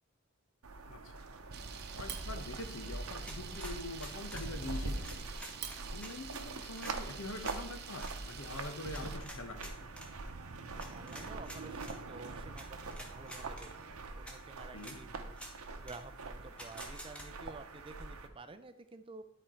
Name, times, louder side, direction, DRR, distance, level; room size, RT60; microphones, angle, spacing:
sound 1, 0.6-18.3, right 3 dB, 90° right, 0.9 m, -44 dB
voice 1, 0.9-1.2 1.9-5.2 5.9-9.7 14.7-15.0, left 2 dB, 70° left, 6 dB, 1.0 m, -44 dB
Camera, 1.5-9.2, right 7 dB, 50° right, 0.7 m, -47 dB
sound 2, 3.3-4.5 5.0-6.1 6.8-7.0 7.4-7.6 8.0-8.1 8.9-10.1 10.8-12.0 12.6-12.7 12.9-13.7 14.3-14.4 14.8-15.0 15.3-15.5 15.9-16.0 16.6-17.3, equal, 5° left, 1.1 m, -48 dB
voice 2, 10.9-13.9 14.2-15.4 15.8-19.2, right 3 dB, 25° right, 10 dB, 0.4 m, -51 dB
11.0 x 4.5 x 4.4 m, 0.79 s
head